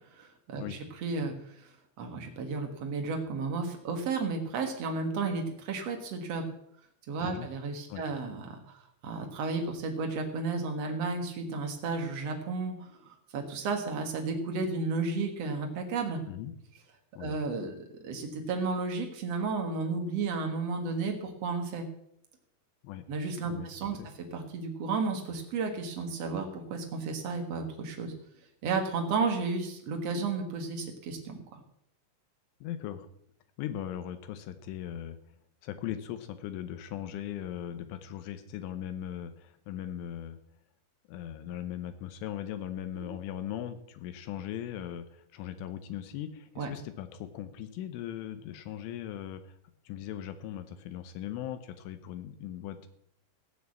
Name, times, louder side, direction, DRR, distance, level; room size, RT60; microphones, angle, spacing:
voice 1, 0.1-6.5 7.1-16.2 17.2-21.9 23.1-24.0 24.3-28.1 28.6-31.6 43.0-43.1 46.6-46.7, right 4 dB, 85° right, 3 dB, 1.4 m, -33 dB
voice 2, 32.6-33.1 33.6-35.2 35.6-40.4 41.1-49.6 49.9-52.9, left 11 dB, 85° left, 10 dB, 3.3 m, -39 dB
16.5 x 6.4 x 8.4 m, 0.73 s
omnidirectional pair, 5.5 m